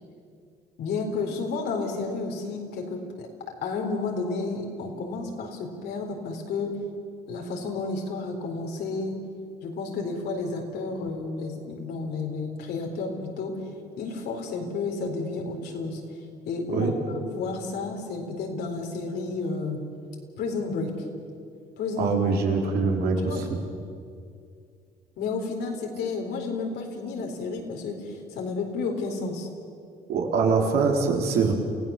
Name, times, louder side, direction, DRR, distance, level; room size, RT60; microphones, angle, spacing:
voice 1, 0.8-3.3 3.6-6.8 7.3-9.2 9.6-13.6 14.0-16.0 16.4-19.8 20.4-20.9 21.8-22.2 23.3-23.5 25.2-29.5, left 3 dB, 75° left, 2 dB, 4.2 m, -31 dB
voice 2, 22.0-23.4 30.1-31.5, right 4 dB, 70° right, 1 dB, 3.9 m, -23 dB
28.5 x 16.5 x 7.3 m, 2.4 s
cardioid pair, 110°, 17 cm